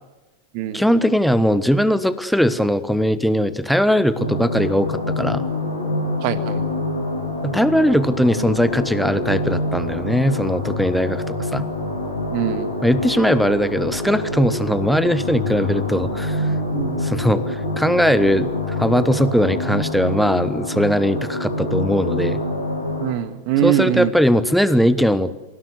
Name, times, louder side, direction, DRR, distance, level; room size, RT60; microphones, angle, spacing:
voice 1, 0.7-5.4 7.4-11.6 12.8-16.5 17.0-22.4 23.6-25.3, equal, ahead, 13 dB, 1.2 m, -19 dB
sound 1, 4.2-23.1, left 1 dB, 90° right, 6.3 m, -26 dB
voice 2, 6.2-6.6 12.3-12.7 16.7-17.0 23.0-24.1, right 12 dB, 45° right, 11 dB, 1.9 m, -22 dB
27.0 x 17.0 x 8.1 m, 1.1 s
figure-of-eight pair, 90°, 0 cm